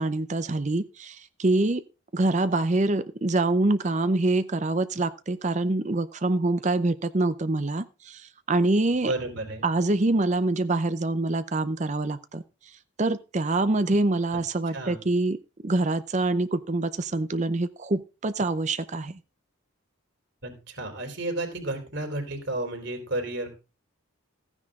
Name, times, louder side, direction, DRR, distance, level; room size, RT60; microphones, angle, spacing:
voice 1, 0.0-1.8 2.1-9.1 9.6-12.4 13.0-15.4 15.6-19.2, right 2 dB, 35° right, 13 dB, 0.6 m, -25 dB
voice 2, 9.0-9.6 14.7-15.0 20.4-23.5, right 2 dB, 55° right, 4 dB, 3.8 m, -32 dB
15.0 x 9.8 x 3.7 m, 0.30 s
head